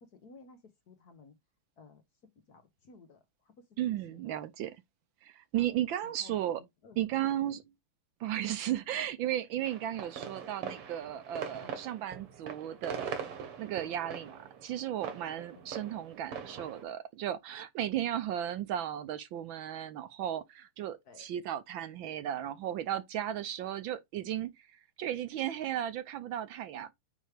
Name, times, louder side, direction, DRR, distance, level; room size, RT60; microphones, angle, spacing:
voice 1, 0.0-1.3 1.8-2.0 2.5-4.3 5.5-5.7 6.0-7.0 11.6-11.7 13.4-13.5 13.8-13.9 15.5-15.7 21.0-21.3, left 4 dB, 50° left, 1.4 m, -56 dB
voice 2, 3.8-4.8 5.2-6.6 7.0-7.7 8.2-13.1 13.6-26.9, right 11 dB, 70° right, 1.3 m, -35 dB
sound 1, 9.6-16.8, right 7 dB, 90° right, 2.3 m, -42 dB
9.1 x 3.1 x 5.0 m
omnidirectional pair, 2.4 m